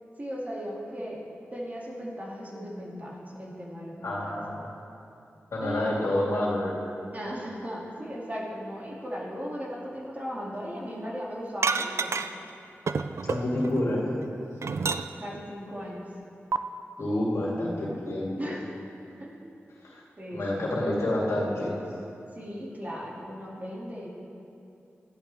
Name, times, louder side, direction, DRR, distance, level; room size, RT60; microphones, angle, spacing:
voice 1, 0.2-1.2 1.5-4.3 5.6-5.9 7.1-12.1 15.2-16.0 18.4-18.6 19.2-19.4 20.2-20.7 22.4-24.1, equal, 35° right, -5 dB, 2.6 m, -37 dB
voice 2, 4.0-4.6 5.5-6.7 13.2-14.2 17.0-18.4 19.8-20.0 20.3-21.7, left 1 dB, 90° left, -5 dB, 2.4 m, -28 dB
sound 1, 11.6-12.5 12.9-13.8 14.2-15.4 16.5-16.6, right 4 dB, 70° right, 0.4 m, -29 dB
14.0 x 11.0 x 3.5 m, 2.7 s
cardioid pair, 50°, 5 cm